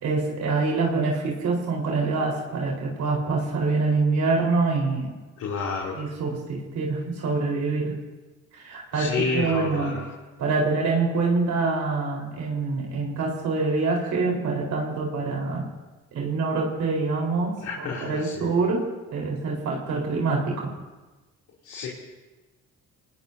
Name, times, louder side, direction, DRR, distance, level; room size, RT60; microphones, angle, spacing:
voice 1, 0.0-5.1 5.9-7.9 8.5-10.0 10.4-15.6 16.1-18.8 19.1-20.7, right 3 dB, 75° right, -2 dB, 4.3 m, -25 dB
voice 2, 5.4-6.0 8.9-10.0 17.6-18.5 21.6-21.9, left 4 dB, 80° left, -4 dB, 3.0 m, -29 dB
25.0 x 19.5 x 2.7 m, 1.2 s
cardioid pair, 90°, 30 cm